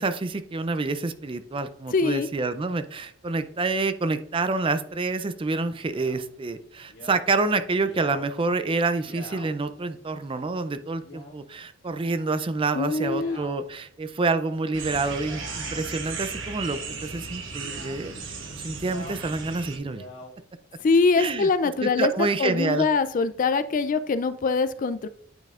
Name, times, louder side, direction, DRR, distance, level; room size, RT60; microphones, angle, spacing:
voice 1, 0.0-20.0 21.2-21.5 21.8-22.9, right 3 dB, 25° right, 11 dB, 0.4 m, -28 dB
voice 2, 1.9-2.3 12.7-13.4 20.8-22.1 22.4-25.1, left 4 dB, 40° left, 12 dB, 0.3 m, -23 dB
Male speech man speaking, 5.8-6.2 6.9-7.2 7.7-8.2 9.0-9.5 10.2-10.5 11.0-11.4 11.8-12.4 12.9-13.5 14.9-15.8 16.5-16.9 17.6-18.0 18.7-19.2 19.6-20.3 21.0-21.5, left 2 dB, 65° left, 1.8 m, -45 dB
sound 1, 14.7-19.8, right 4 dB, 70° right, 1.2 m, -36 dB
9.1 x 5.3 x 2.4 m, 0.64 s
head